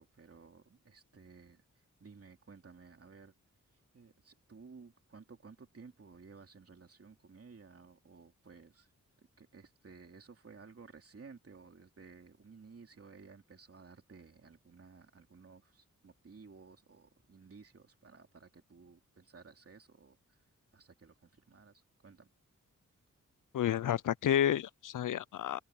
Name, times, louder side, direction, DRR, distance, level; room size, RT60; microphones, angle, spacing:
voice 1, 0.0-3.3 3.7-8.9 9.2-22.3, right 5 dB, 45° right, 3.0 m, -56 dB
voice 2, 23.5-25.6, left 10 dB, 80° left, 0.5 m, -30 dB
wide cardioid pair, 110°, 31 cm